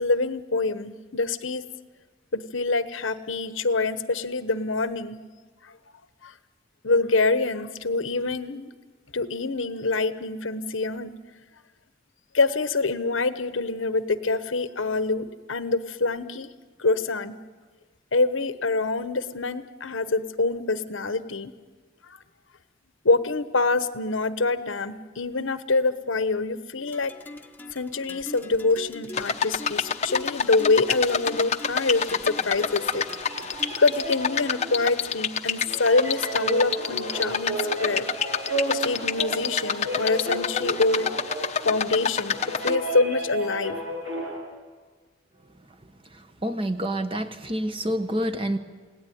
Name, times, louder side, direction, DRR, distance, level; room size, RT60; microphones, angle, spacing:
voice 1, 0.0-1.6 2.3-5.2 6.2-6.3 6.8-8.7 9.1-11.1 12.3-16.5 16.8-17.4 18.1-21.5 22.1-22.2 23.0-27.1 27.7-33.0 33.8-38.1 38.7-41.1 41.6-43.8, left 3 dB, 90° left, 11 dB, 1.2 m, -25 dB
sound 1, 26.9-34.1, left 1 dB, 10° left, 1.2 m, -42 dB
sound 2, 29.1-42.7, left 6 dB, 35° left, 0.9 m, -28 dB
sound 3, 32.3-44.4, right 1 dB, 80° right, 6.7 m, -33 dB
voice 2, 46.4-48.6, equal, 30° right, 8 dB, 1.4 m, -27 dB
28.0 x 18.0 x 9.4 m, 1.4 s
head